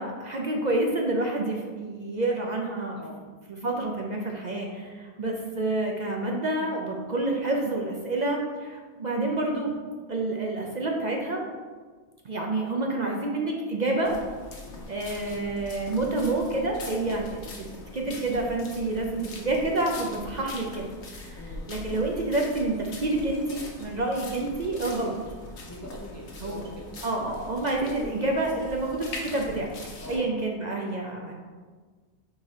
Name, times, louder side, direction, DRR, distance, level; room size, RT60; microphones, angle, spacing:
voice 1, 0.0-3.0 3.5-9.7 10.1-11.4 12.2-14.2 14.9-17.7 17.9-25.2 26.4-26.7 27.0-29.7 30.1-31.3, right 2 dB, 45° right, 0 dB, 0.7 m, -28 dB
sound 1, 14.0-30.2, left 2 dB, 85° left, 1.3 m, -42 dB
voice 2, 25.7-26.8 27.6-27.7 30.0-30.4 31.1-31.2, left 1 dB, 20° left, -1 dB, 0.4 m, -43 dB
4.8 x 4.1 x 4.9 m, 1.5 s
omnidirectional pair, 1.2 m